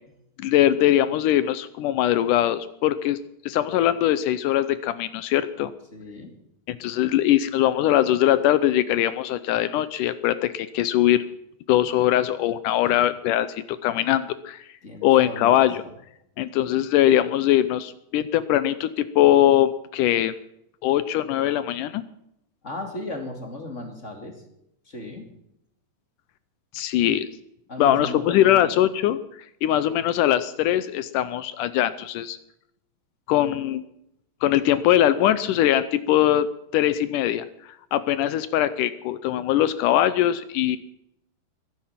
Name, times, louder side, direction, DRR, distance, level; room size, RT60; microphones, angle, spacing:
voice 1, 0.4-3.2 3.5-5.7 6.7-11.2 11.7-13.5 13.8-14.6 15.0-15.8 16.4-20.3 20.8-22.0 26.7-27.3 27.8-29.2 29.6-32.4 33.3-33.8 34.4-36.5 36.7-37.4 37.9-40.8, left 12 dB, 80° left, 14 dB, 1.9 m, -21 dB
voice 2, 5.9-6.3 12.8-13.0 14.8-15.9 22.6-24.3 24.9-25.2 27.7-28.7, left 2 dB, 25° left, 3 dB, 2.2 m, -36 dB
22.0 x 10.5 x 5.8 m, 0.79 s
omnidirectional pair, 4.3 m